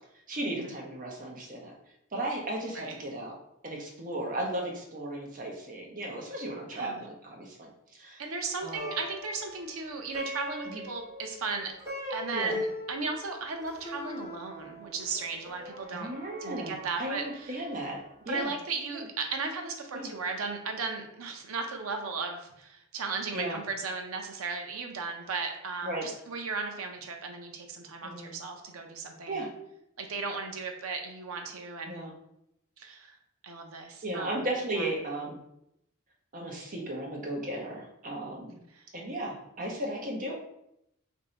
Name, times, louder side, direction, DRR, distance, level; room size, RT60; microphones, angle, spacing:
voice 1, 0.3-1.7 2.1-3.4 3.6-7.7 7.9-8.2 8.6-8.9 10.7-10.9 12.3-12.6 15.9-18.0 18.2-18.5 18.9-19.0 19.9-20.1 23.3-23.6 25.8-26.1 28.0-28.4 29.3-29.5 31.9-32.1 34.0-35.4 36.3-38.6 38.9-40.3, right 1 dB, 40° right, -1 dB, 0.8 m, -35 dB
voice 2, 6.7-7.0 8.2-11.7 12.1-16.1 16.4-17.6 18.3-29.4 30.0-32.0 32.8-33.2 33.4-34.5 34.8-34.9 38.7-38.8, right 4 dB, 80° right, 4 dB, 0.6 m, -36 dB
Plucked string instrument, 8.5-18.0, left 2 dB, 15° right, 1.2 m, -41 dB
2.6 x 2.6 x 4.2 m, 0.79 s
head